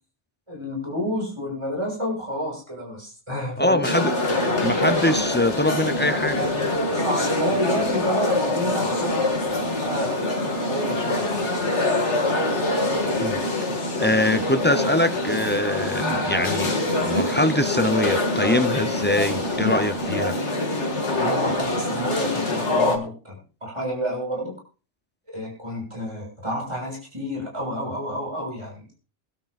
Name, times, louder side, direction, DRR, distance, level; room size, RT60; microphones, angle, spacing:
voice 1, 0.5-3.9 6.9-9.3 9.8-10.2 10.7-11.2 14.0-14.1 21.2-24.6 25.3-29.0, equal, 25° right, 6.8 m, -29 dB
voice 2, 3.6-4.1 4.6-6.5 13.2-13.4 14.0-20.4, left 1 dB, 15° left, 0.3 m, -23 dB
sound 1, 3.8-23.0, left 2 dB, 80° left, 2.3 m, -24 dB
23.5 x 12.0 x 2.5 m
omnidirectional pair, 1.2 m